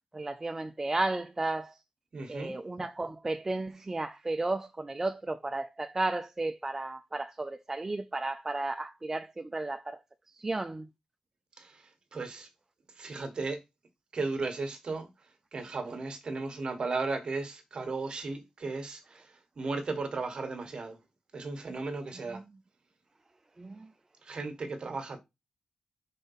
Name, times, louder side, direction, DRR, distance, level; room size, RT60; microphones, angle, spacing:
voice 1, 0.1-1.8 2.3-10.0 10.3-10.9 22.3-22.4 23.6-23.9, right 2 dB, 20° right, 0.4 m, -33 dB
voice 2, 2.1-2.6 11.6-11.8 12.1-12.5 13.0-13.6 14.1-15.1 15.5-19.3 19.6-21.0 21.3-22.4 24.3-25.2, right 3 dB, 45° right, 1.5 m, -35 dB
5.3 x 4.1 x 5.6 m
wide cardioid pair, 135°, 2 cm